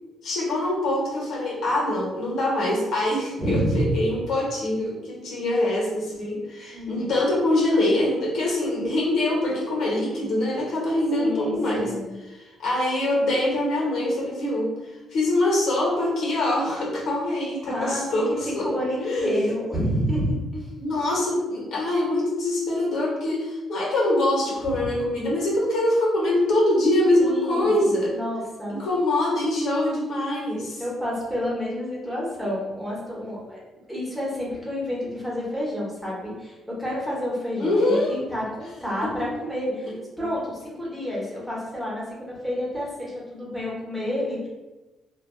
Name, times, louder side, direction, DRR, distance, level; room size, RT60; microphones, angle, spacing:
voice 1, 0.2-11.9 12.2-14.7 15.1-18.7 19.0-19.3 20.8-28.1 28.7-30.8 37.6-38.2, left 1 dB, 75° left, -4 dB, 1.0 m, -24 dB
voice 2, 3.4-3.9 6.7-7.0 11.2-12.1 17.6-20.7 27.2-27.7 28.1-28.8 30.8-33.6 33.9-44.5, equal, 5° right, -6 dB, 1.0 m, -29 dB
3.2 x 2.2 x 2.3 m, 1.1 s
cardioid pair, 90°, 0 cm